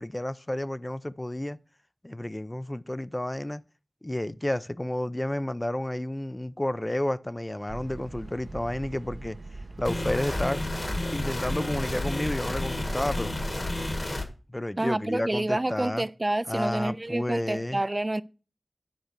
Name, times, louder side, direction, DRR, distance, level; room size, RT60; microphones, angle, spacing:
voice 1, 0.0-1.6 2.0-3.7 4.0-9.4 9.8-13.3 14.5-16.0 16.5-17.8, left 1 dB, 20° left, 0.5 m, -31 dB
sound 1, 7.7-14.0, right 2 dB, 85° right, 1.1 m, -41 dB
sound 2, 9.8-14.2, left 1 dB, 50° left, 1.8 m, -31 dB
voice 2, 14.8-18.2, right 1 dB, 35° right, 0.4 m, -28 dB
10.5 x 4.4 x 6.6 m
wide cardioid pair, 60°, 0 cm